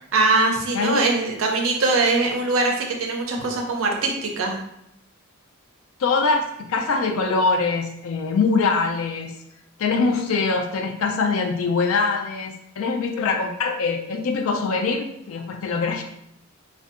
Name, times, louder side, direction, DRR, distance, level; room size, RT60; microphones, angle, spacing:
voice 1, 0.1-4.6, right 3 dB, 65° right, 2 dB, 0.5 m, -22 dB
voice 2, 6.0-9.3 9.8-16.0, left 4 dB, 70° left, 4 dB, 0.4 m, -23 dB
2.6 x 2.2 x 2.4 m, 0.77 s
head